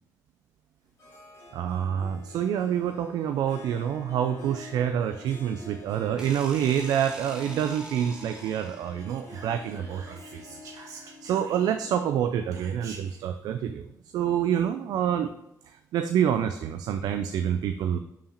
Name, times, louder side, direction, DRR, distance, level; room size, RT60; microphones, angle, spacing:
Harp, 1.0-13.2, left 3 dB, 45° left, 2.0 m, -48 dB
voice 1, 1.5-13.9 14.1-15.3 15.9-18.0, right 9 dB, 85° right, 8 dB, 0.4 m, -27 dB
sound 1, 6.2-9.1, right 1 dB, 10° right, 1.3 m, -43 dB
Whispering, 9.0-12.0 12.5-13.3, right 4 dB, 55° right, 1.3 m, -48 dB
5.7 x 4.8 x 4.4 m, 0.83 s
cardioid pair, 140°, 7 cm